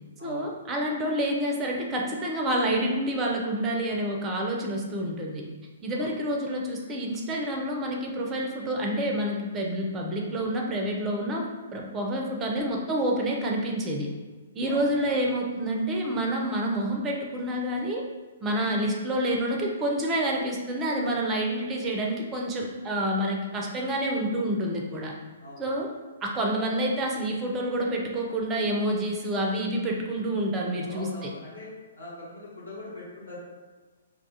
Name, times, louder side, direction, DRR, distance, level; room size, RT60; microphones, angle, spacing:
voice 1, 0.2-5.4 5.8-11.4 11.7-14.1 14.5-18.0 18.4-25.1 25.6-25.9 26.2-31.3, right 1 dB, 20° right, -1 dB, 0.4 m, -28 dB
voice 2, 14.6-15.2 25.4-25.6 30.9-31.7 31.9-33.4, left 2 dB, 75° left, -9 dB, 1.3 m, -42 dB
2.4 x 2.2 x 2.7 m, 1.3 s
figure-of-eight pair, 120°, 0 cm